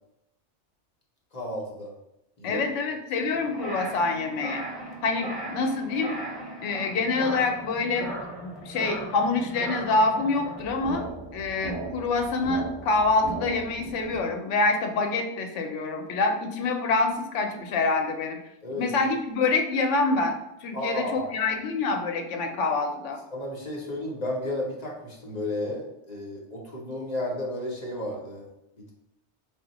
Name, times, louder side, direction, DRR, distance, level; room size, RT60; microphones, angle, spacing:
voice 1, 1.3-1.9 2.4-2.6 18.6-18.9 20.7-21.5 23.3-28.5 28.8-28.9, left 1 dB, 40° left, -1 dB, 0.7 m, -33 dB
voice 2, 2.4-4.6 5.0-6.2 6.6-8.1 8.4-11.0 11.3-18.4 18.7-20.3 20.6-23.2, left 3 dB, 85° left, 4 dB, 0.9 m, -26 dB
sound 1, 3.3-14.2, right 2 dB, ahead, 0.9 m, -37 dB
4.2 x 2.1 x 3.9 m, 0.86 s
omnidirectional pair, 1.2 m